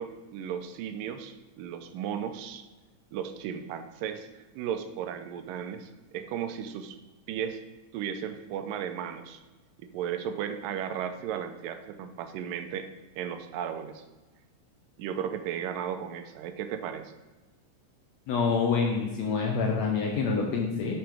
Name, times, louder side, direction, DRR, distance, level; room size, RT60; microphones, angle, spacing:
voice 1, 0.0-2.7 3.1-7.0 7.3-7.6 7.9-9.4 9.8-12.9 13.2-14.0 15.0-17.1, right 9 dB, 85° right, 9 dB, 2.3 m, -35 dB
voice 2, 18.3-21.0, left 5 dB, 75° left, 1 dB, 1.6 m, -27 dB
6.9 x 6.2 x 4.9 m, 1.1 s
omnidirectional pair, 3.8 m